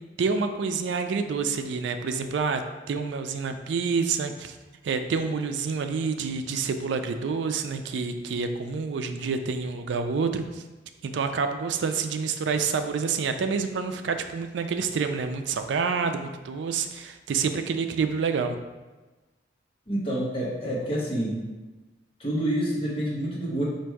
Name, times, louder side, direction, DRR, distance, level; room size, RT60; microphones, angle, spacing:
voice 1, 0.2-2.6 2.9-4.6 4.8-10.6 11.0-18.6, right 5 dB, 75° right, 8 dB, 0.3 m, -28 dB
voice 2, 19.9-21.4 22.2-23.6, right 1 dB, 30° left, -5 dB, 1.0 m, -28 dB
4.5 x 2.5 x 4.6 m, 1.2 s
head